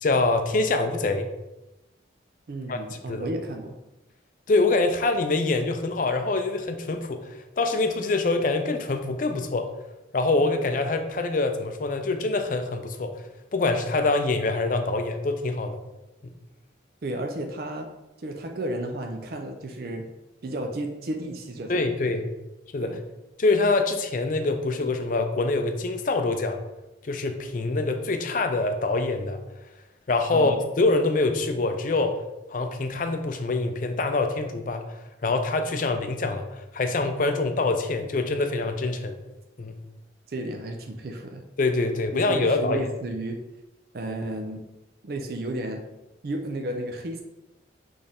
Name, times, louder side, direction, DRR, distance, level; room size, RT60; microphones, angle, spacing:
voice 1, 0.0-1.3 2.7-2.8 3.1-3.2 4.5-7.3 7.6-9.7 10.1-13.1 13.5-15.8 21.7-22.3 22.7-22.9 23.4-26.6 27.0-29.4 30.1-32.2 32.5-34.8 35.2-39.2 39.6-39.8 41.6-42.9, left 3 dB, 45° left, 6 dB, 0.4 m, -25 dB
voice 2, 2.5-3.7 17.0-17.9 18.2-20.1 20.4-21.9 22.8-23.0 30.3-30.6 40.3-41.4 42.3-43.4 43.9-44.6 45.0-45.8 46.2-47.2, right 1 dB, 50° right, 3 dB, 0.4 m, -32 dB
4.2 x 3.3 x 3.5 m, 0.97 s
head